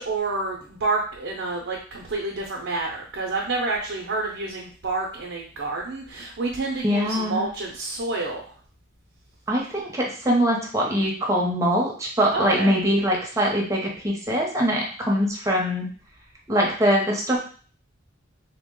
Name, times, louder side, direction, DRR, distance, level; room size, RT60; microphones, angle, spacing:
voice 1, 0.0-8.4 12.3-12.7, right 3 dB, 70° right, -1 dB, 0.6 m, -28 dB
voice 2, 6.8-7.4 9.5-15.9 16.5-17.4, equal, 15° right, -1 dB, 0.8 m, -23 dB
3.3 x 2.1 x 3.7 m, 0.42 s
head